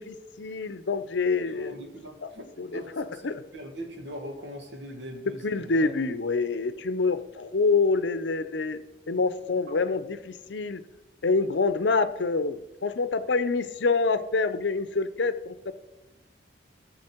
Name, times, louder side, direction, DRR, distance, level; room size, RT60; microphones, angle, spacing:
voice 1, 0.0-1.8 2.2-2.3 2.6-3.4 5.3-8.8 9.1-10.8 11.2-15.7, left 4 dB, 75° left, 13 dB, 0.6 m, -26 dB
voice 2, 1.5-3.2 3.5-5.9, equal, 75° right, 3 dB, 1.9 m, -41 dB
14.5 x 7.1 x 4.5 m, 1.0 s
head